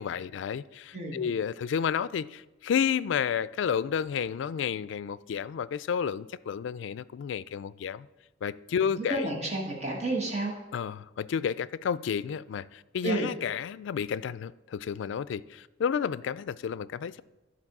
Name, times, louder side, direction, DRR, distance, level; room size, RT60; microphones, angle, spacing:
voice 1, 0.0-8.1 8.4-9.3 10.7-17.2, left 7 dB, 80° left, 0.3 m, -31 dB
voice 2, 9.0-10.5 13.0-13.3, right 2 dB, 35° right, 1.3 m, -30 dB
12.5 x 4.2 x 5.9 m
head